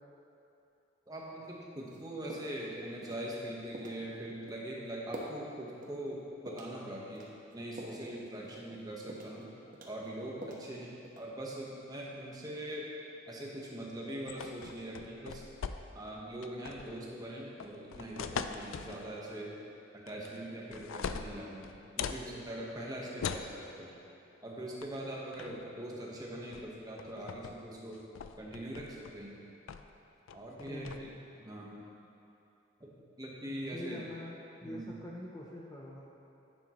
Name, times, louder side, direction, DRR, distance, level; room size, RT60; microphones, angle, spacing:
voice 1, 1.1-7.3 7.5-9.5 9.9-12.9 13.3-15.4 15.9-19.6 19.9-23.9 24.4-28.0 28.4-29.4 30.3-31.1 31.4-31.8 32.8-32.9 33.2-34.0 34.6-35.0, right 1 dB, 20° right, -3 dB, 1.1 m, -42 dB
sound 1, 1.9-2.0 2.3-2.7 3.0-3.3 3.7-4.0 4.5-4.6 5.1-5.4 5.8-6.0 6.5-6.8 7.1-8.0 8.4-8.7 9.1-9.4 9.7-10.7 11.0-11.4, right 1 dB, 40° right, 1.1 m, -46 dB
sound 2, 14.3-16.1 16.4-17.0 17.6-19.0 20.1-20.4 20.7-22.2 23.2-23.5 24.8-25.0 25.3-25.7 26.5-26.7 27.0-27.5 27.9-29.2 29.7-30.0 30.3-31.0, left 6 dB, 75° left, 0.4 m, -41 dB
voice 2, 16.8-17.1 25.4-25.6 25.9-26.1 30.7-31.0 33.7-36.0, left 1 dB, 20° left, -3 dB, 0.6 m, -45 dB
11.0 x 8.7 x 3.0 m, 2.8 s
head